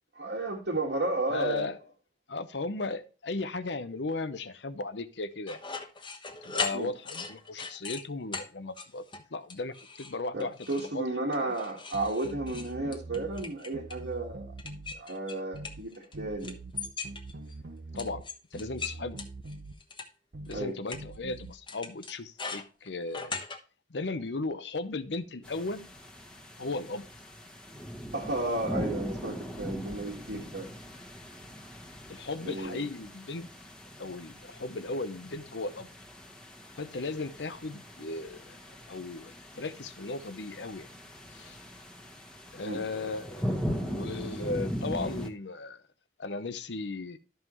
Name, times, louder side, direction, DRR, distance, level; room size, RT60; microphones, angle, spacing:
voice 1, 0.2-1.7 6.7-6.9 10.3-14.5 14.9-16.5 20.5-20.8 28.1-30.7 32.4-32.8 42.6-42.8, right 2 dB, 85° right, 1.8 m, -33 dB
voice 2, 1.3-1.8 2.3-5.6 6.4-10.6 10.9-11.0 11.4-11.5 17.9-19.2 20.5-23.4 23.9-25.9 26.6-27.1 32.1-33.5 34.0-35.9 36.8-38.6 38.9-40.9 41.3-41.6 42.5-43.5 43.8-45.8 46.2-47.2, left 3 dB, 75° left, 0.8 m, -36 dB
sound 1, 5.5-8.0 8.3-8.5 8.8-9.2 9.5-10.1 10.4-10.9 11.3-14.0 14.6-16.1 16.4-17.5 18.0-20.1 20.5-20.6 20.9-21.0 21.7-23.6, left 4 dB, 30° left, 1.1 m, -38 dB
sound 2, 11.9-13.5 13.7-15.0 15.5-15.9 16.1-18.3 18.5-19.8 20.3-20.7 20.9-21.5, right 2 dB, 65° right, 0.9 m, -43 dB
sound 3, 25.4-45.3, equal, 5° left, 1.4 m, -40 dB
12.5 x 5.6 x 3.1 m
head